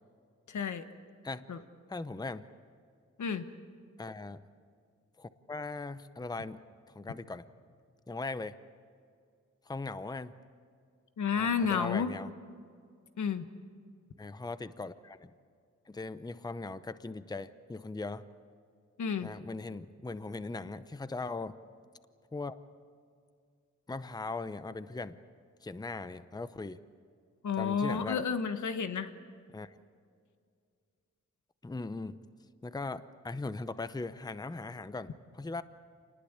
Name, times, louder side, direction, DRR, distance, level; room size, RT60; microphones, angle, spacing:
voice 1, 0.5-0.8 1.5-1.6 3.2-3.4 11.2-12.1 13.2-13.5 19.0-19.3 27.4-29.1, left 6 dB, 80° left, 9 dB, 1.3 m, -31 dB
voice 2, 1.9-2.5 4.0-4.5 5.2-6.6 6.9-7.4 8.1-8.6 9.7-10.4 11.4-12.3 14.2-15.3 15.9-18.3 19.2-21.6 22.3-22.6 23.9-25.2 25.6-26.8 27.6-28.2 29.5-29.8 31.6-32.3 32.6-35.6, left 3 dB, 15° left, 13 dB, 0.7 m, -39 dB
27.5 x 20.0 x 8.3 m, 2.2 s
wide cardioid pair, 95°, 29 cm